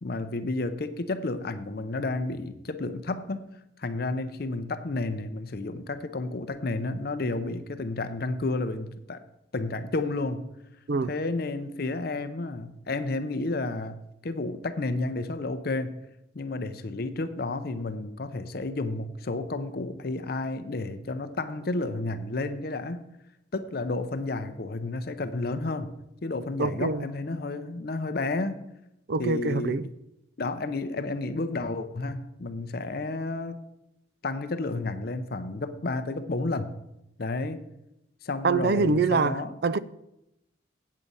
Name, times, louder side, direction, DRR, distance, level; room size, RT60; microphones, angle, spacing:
voice 1, 0.0-3.5 3.8-9.2 9.5-10.4 11.1-14.0 14.2-15.9 16.3-23.1 23.5-25.9 26.2-28.6 29.2-29.8 30.4-33.6 34.2-36.7 37.2-37.6 38.2-39.6, left 2 dB, 50° left, 0.6 m, -31 dB
voice 2, 26.6-27.1 29.1-29.9 38.4-39.8, right 4 dB, 55° right, 0.4 m, -25 dB
8.3 x 7.6 x 5.4 m
head